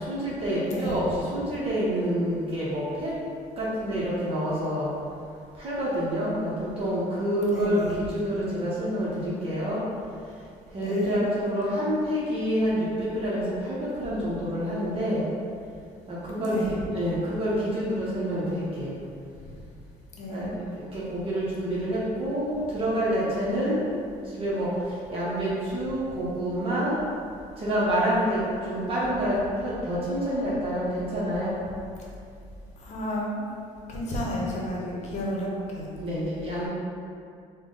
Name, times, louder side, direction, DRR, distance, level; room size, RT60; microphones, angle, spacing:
voice 1, 0.0-3.1 3.6-4.9 5.6-9.8 10.7-15.3 16.1-19.0 20.3-23.9 24.3-24.7 25.1-27.0 27.6-31.5 36.0-36.7, equal, 40° right, -8 dB, 0.8 m, -27 dB
voice 2, 0.6-1.0 7.5-8.0 10.8-11.2 16.4-16.7 20.1-20.5 32.8-33.5 33.9-35.9, equal, 50° left, -3 dB, 0.8 m, -32 dB
3.4 x 2.1 x 3.8 m, 2.3 s
cardioid pair, 115°, 14 cm